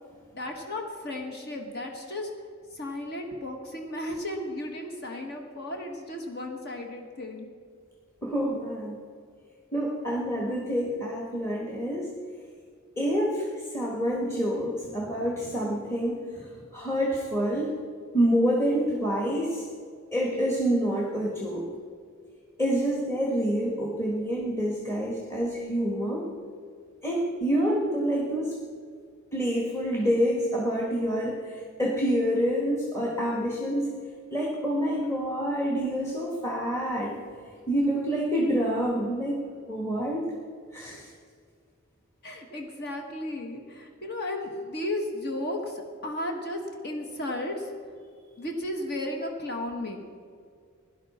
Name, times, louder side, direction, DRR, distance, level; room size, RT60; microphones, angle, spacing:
voice 1, 0.3-2.3 2.7-7.5 42.2-47.7 48.4-50.0, left 1 dB, 50° left, 2 dB, 1.4 m, -34 dB
voice 2, 8.2-9.0 9.7-12.1 13.0-17.7 18.1-19.7 20.1-21.7 22.6-26.3 27.0-28.6 29.3-33.9 34.3-37.2 37.7-39.4 39.7-40.3 40.7-41.1, equal, 15° left, -2 dB, 1.5 m, -27 dB
17.0 x 11.0 x 4.3 m, 2.1 s
head